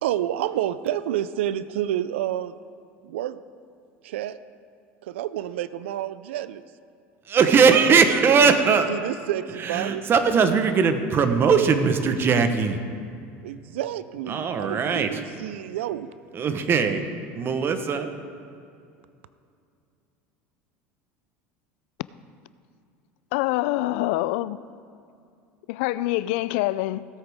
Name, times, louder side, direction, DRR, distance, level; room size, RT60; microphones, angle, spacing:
voice 1, 0.0-2.5 3.0-3.4 4.0-4.4 5.0-6.6 8.3-10.0 13.4-16.1, right 12 dB, 90° right, 15 dB, 0.4 m, -29 dB
voice 2, 7.3-8.9 9.6-12.8 14.3-15.1 16.3-17.0 17.3-18.1, right 5 dB, 35° right, 8 dB, 1.1 m, -20 dB
voice 3, 23.3-24.6 25.7-27.1, left 17 dB, 75° left, 17 dB, 0.3 m, -25 dB
17.0 x 8.0 x 3.6 m, 2.4 s
supercardioid pair, 100°, 6 cm